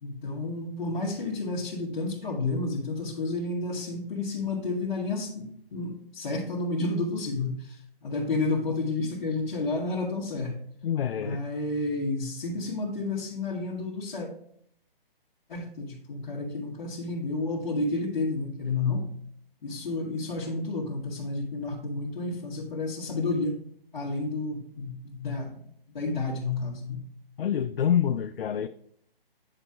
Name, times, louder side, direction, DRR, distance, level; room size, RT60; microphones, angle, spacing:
voice 1, 0.0-10.6 11.2-14.3 15.5-19.0 19.6-23.6 23.9-25.7 25.9-27.0, left 3 dB, 50° left, -7 dB, 1.9 m, -31 dB
voice 2, 10.8-11.4 27.4-28.7, left 9 dB, 70° left, 10 dB, 0.5 m, -26 dB
9.7 x 4.9 x 2.9 m, 0.68 s
hypercardioid pair, 155°, 30 cm